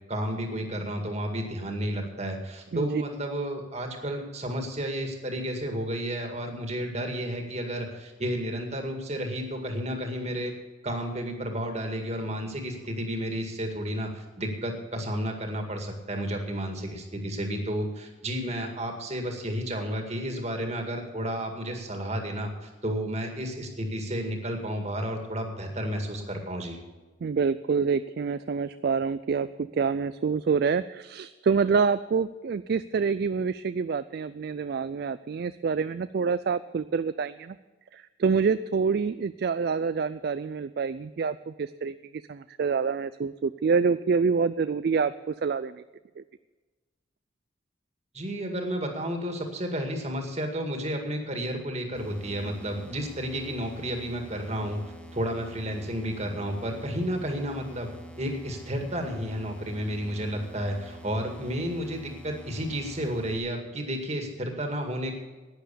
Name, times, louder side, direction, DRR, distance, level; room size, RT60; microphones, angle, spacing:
voice 1, 0.1-10.5 10.8-26.8 48.1-54.8 55.1-57.9 58.2-65.1, equal, 35° right, 4 dB, 2.0 m, -32 dB
voice 2, 2.7-3.0 27.2-37.6 37.9-41.9 42.3-45.8 46.2-46.3, right 5 dB, 50° right, 13 dB, 0.3 m, -27 dB
sound 1, 52.0-63.4, right 1 dB, 5° left, 1.0 m, -46 dB
11.5 x 9.8 x 6.9 m, 1.3 s
head